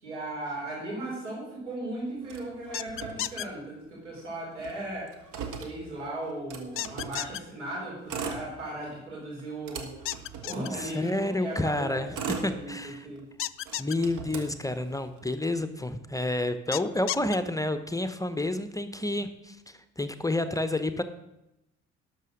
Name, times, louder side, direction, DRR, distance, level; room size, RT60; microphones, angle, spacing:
voice 1, 0.0-5.1 5.6-10.0 10.4-12.1 12.4-13.2, right 1 dB, 85° right, -4 dB, 4.6 m, -37 dB
Motor vehicle (road), 2.3-3.9 4.2-4.3 4.5-7.3 7.9-9.0 9.4-11.2 11.8-13.2 13.6-15.2, right 5 dB, 60° right, 1.7 m, -39 dB
sound 1, 2.7-3.5 6.8-7.4 10.1-10.7 13.4-14.0 16.7-17.4, left 14 dB, 40° left, 0.4 m, -32 dB
voice 2, 10.7-12.1 12.4-13.1 13.8-21.0, left 1 dB, 10° left, 10 dB, 0.8 m, -29 dB
12.0 x 6.1 x 6.5 m, 0.88 s
figure-of-eight pair, 50°, 35 cm